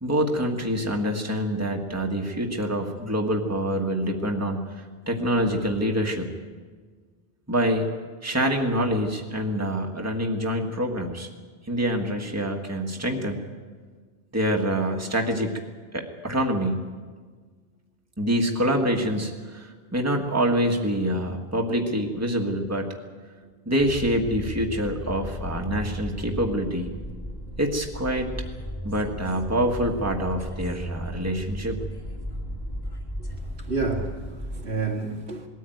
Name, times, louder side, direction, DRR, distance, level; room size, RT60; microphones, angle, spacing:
voice 1, 0.0-6.3 7.5-7.9 8.2-11.3 11.7-13.4 14.3-15.5 15.9-16.8 18.2-22.9 23.6-26.9 27.6-28.3 28.8-31.8, equal, 15° right, 1.7 m, -26 dB
sound 1, 23.8-34.7, equal, 20° left, 2.3 m, -35 dB
voice 2, 33.2-35.5, right 3 dB, 80° right, 2.6 m, -30 dB
20.5 x 14.0 x 9.3 m
omnidirectional pair, 1.1 m